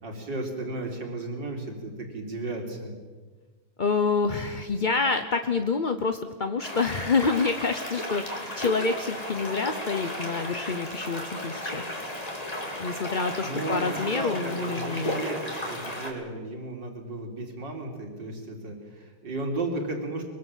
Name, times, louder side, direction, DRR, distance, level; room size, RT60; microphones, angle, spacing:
voice 1, 0.0-3.0 13.4-20.2, right 2 dB, 60° right, 2 dB, 4.4 m, -34 dB
voice 2, 3.8-11.8 12.8-15.2, left 4 dB, 45° left, 7 dB, 0.6 m, -27 dB
sound 1, 6.6-16.1, left 1 dB, 20° left, 3.4 m, -34 dB
23.0 x 23.0 x 7.6 m, 1.4 s
omnidirectional pair, 2.2 m